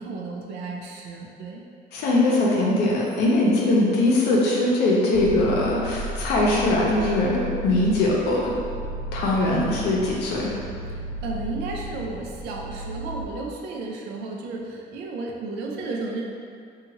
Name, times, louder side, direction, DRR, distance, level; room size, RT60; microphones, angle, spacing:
voice 1, 0.0-1.6 10.9-16.2, right 3 dB, 90° right, -1 dB, 0.5 m, -33 dB
voice 2, 1.9-8.5 9.1-10.5, left 2 dB, 80° left, -3 dB, 0.7 m, -21 dB
sound 1, 5.1-13.3, right 1 dB, 40° left, 0.6 m, -34 dB
2.8 x 2.3 x 2.8 m, 2.3 s
cardioid pair, 110°, 17 cm